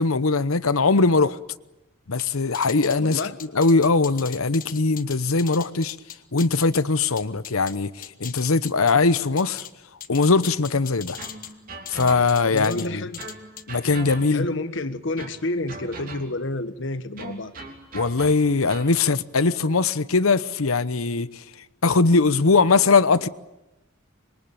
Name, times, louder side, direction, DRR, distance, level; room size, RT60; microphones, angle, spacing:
voice 1, 0.0-1.4 2.1-3.2 3.5-6.0 6.3-9.7 10.1-11.2 11.9-13.1 13.7-14.5 17.9-21.4 21.8-23.3, left 4 dB, 85° left, 0.9 m, -21 dB
sound 1, 2.2-7.8 8.0-9.7 10.0-11.5 11.9-12.9 13.1-13.6, left 9 dB, 40° left, 1.5 m, -39 dB
voice 2, 3.0-3.4 12.4-13.3 14.3-17.5, left 2 dB, 60° left, 1.5 m, -29 dB
sound 2, 11.2-12.6 13.2-14.6 15.2-16.5 17.2-19.0, right 2 dB, 40° right, 3.3 m, -40 dB
26.0 x 23.0 x 8.9 m
head